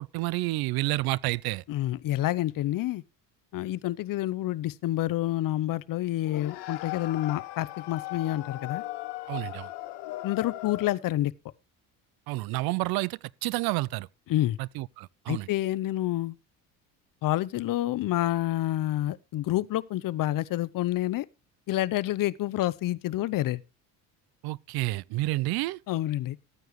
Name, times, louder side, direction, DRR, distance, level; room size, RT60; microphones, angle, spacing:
voice 1, 0.0-1.6 9.3-9.7 12.3-14.1 14.6-15.5 24.4-25.8, right 19 dB, 65° right, 0.6 m, -30 dB
voice 2, 1.7-3.0 3.5-8.8 10.2-11.3 14.3-14.6 15.3-16.4 17.2-21.3 21.7-23.6 25.9-26.4, left 14 dB, 55° left, 0.7 m, -28 dB
sound 1, 6.2-11.1, left 16 dB, 80° left, 1.5 m, -38 dB
14.0 x 9.2 x 3.1 m
supercardioid pair, 80°, 41 cm